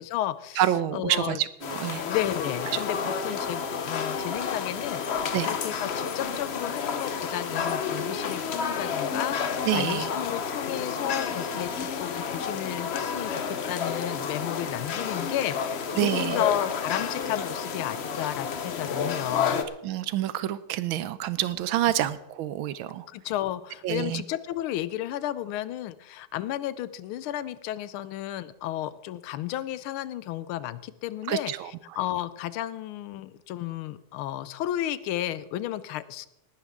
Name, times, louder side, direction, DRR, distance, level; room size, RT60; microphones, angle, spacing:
voice 1, 0.0-0.6 0.9-1.4 2.0-19.6 23.1-31.5 32.0-36.3, left 13 dB, 85° left, 16 dB, 1.5 m, -33 dB
voice 2, 0.6-2.0 2.7-2.8 5.3-5.5 9.7-10.1 16.0-16.4 19.8-23.1 23.8-24.2 31.3-31.7, right 12 dB, 80° right, 15 dB, 1.4 m, -27 dB
sound 1, 1.6-19.6, left 6 dB, 65° left, 0.6 m, -30 dB
19.0 x 11.5 x 3.6 m, 0.87 s
omnidirectional pair, 2.3 m